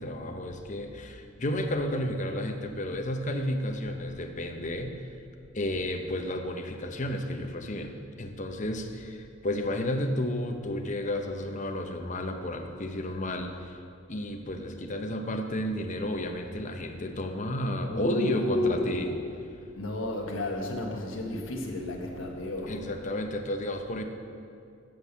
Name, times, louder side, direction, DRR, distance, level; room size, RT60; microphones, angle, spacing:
voice 1, 0.0-5.0 5.5-13.8 14.1-19.1 22.7-24.0, left 1 dB, 40° left, 4 dB, 0.8 m, -32 dB
voice 2, 17.9-19.2 19.8-23.2, left 1 dB, 85° left, 0 dB, 1.5 m, -32 dB
8.4 x 7.5 x 6.8 m, 2.4 s
head